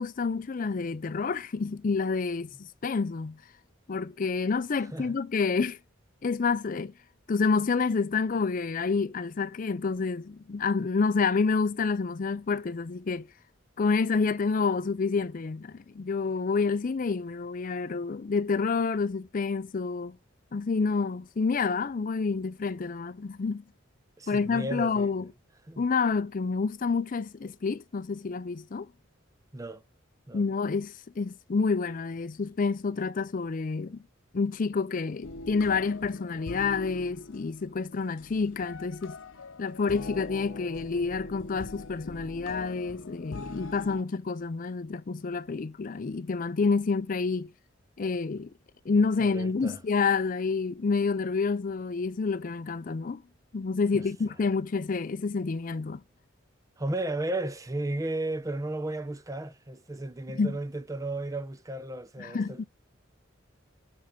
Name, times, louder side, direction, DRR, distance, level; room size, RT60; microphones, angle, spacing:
voice 1, 0.0-3.4 3.9-5.8 6.2-6.9 7.3-13.3 13.8-20.2 20.5-23.6 24.3-25.3 25.8-28.9 30.3-34.0 34.3-39.2 39.6-47.5 48.0-48.5 48.9-53.2 53.5-56.0 60.3-60.6 62.2-62.6, left 4 dB, 40° left, 0.4 m, -28 dB
voice 2, 24.2-25.1 25.7-25.8 29.5-29.8 30.3-30.5 49.2-49.8 53.9-54.1 56.8-62.6, right 2 dB, 15° right, 0.6 m, -34 dB
sound 1, 35.2-44.0, left 3 dB, 70° left, 0.7 m, -42 dB
7.7 x 5.5 x 3.7 m
head